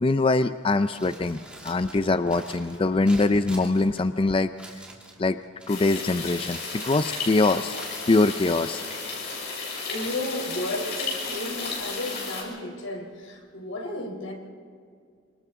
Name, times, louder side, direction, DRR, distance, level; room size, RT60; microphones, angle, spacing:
voice 1, 0.0-4.5 5.2-5.4 5.7-7.8 8.1-8.8, left 2 dB, 25° left, 11 dB, 0.4 m, -23 dB
Crumpling crinkling, 0.8-9.3, right 1 dB, 5° right, 2.8 m, -47 dB
voice 2, 1.6-3.2 9.4-14.3, left 1 dB, 90° left, 2 dB, 3.9 m, -35 dB
sound 1, 5.7-12.4, left 4 dB, 55° left, 6.9 m, -33 dB
29.5 x 25.5 x 3.7 m, 2.2 s
head